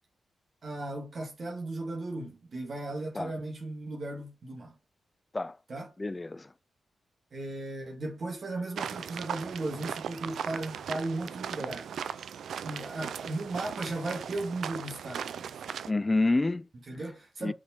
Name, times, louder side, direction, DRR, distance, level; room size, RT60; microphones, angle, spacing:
voice 1, 0.6-4.8 5.7-5.9 7.3-11.9 12.6-15.6 16.9-17.5, right 2 dB, 50° right, 1.9 m, -36 dB
voice 2, 6.0-6.5 15.9-16.7 17.4-17.5, left 2 dB, 25° left, 0.4 m, -28 dB
sound 1, 8.8-15.9, right 8 dB, 80° right, 0.4 m, -38 dB
5.4 x 4.7 x 4.4 m
cardioid pair, 70°, 0 cm